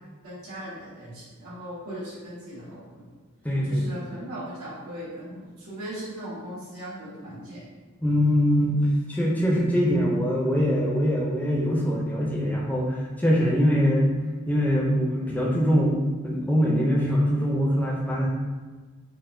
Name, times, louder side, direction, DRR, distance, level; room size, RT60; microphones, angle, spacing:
voice 1, 0.2-3.1 3.7-7.6, equal, 90° right, -9 dB, 1.3 m, -38 dB
voice 2, 3.4-3.8 8.0-14.1 14.5-16.0 16.2-18.3, equal, 10° left, -3 dB, 0.4 m, -23 dB
3.9 x 2.1 x 2.6 m, 1.3 s
head